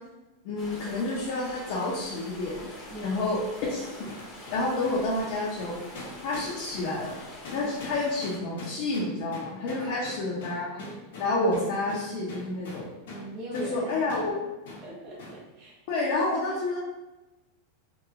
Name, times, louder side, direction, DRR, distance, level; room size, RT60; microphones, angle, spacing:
voice 1, 0.4-2.6 3.0-3.9 4.5-5.7 6.2-7.2 7.5-10.8 11.2-12.8 13.5-14.4 15.9-16.8, left 2 dB, 55° left, -5 dB, 0.6 m, -29 dB
sound 1, 0.6-8.4, left 1 dB, 20° left, 0.7 m, -45 dB
voice 2, 2.9-3.2 7.6-7.7 9.7-10.3 10.8-11.2 13.1-14.2 14.8-15.7, right 1 dB, 40° right, -4 dB, 0.9 m, -42 dB
sound 2, 4.1-13.3 13.5-13.7 14.1-14.3 14.6-14.8 15.2-15.4, left 2 dB, 85° left, 0.9 m, -43 dB
2.8 x 2.3 x 2.4 m, 1.0 s
supercardioid pair, 145°, 0 cm